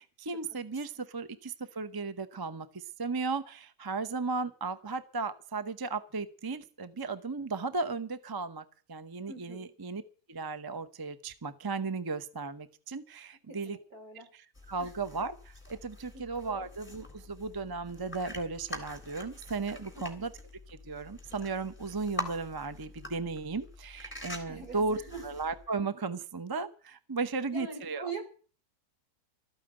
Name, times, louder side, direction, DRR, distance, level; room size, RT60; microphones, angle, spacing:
voice 1, 0.0-10.0 10.3-13.8 14.1-20.3 20.7-28.1, right 4 dB, 20° right, 12 dB, 0.6 m, -35 dB
voice 2, 9.3-9.7 13.5-14.3 14.8-14.9 16.1-16.7 20.0-20.3 24.5-25.2 27.3-28.2, right 4 dB, 70° right, 4 dB, 3.9 m, -43 dB
sound 1, 14.5-25.7, left 1 dB, 5° left, 3.3 m, -45 dB
13.5 x 9.1 x 8.9 m, 0.41 s
omnidirectional pair, 1.6 m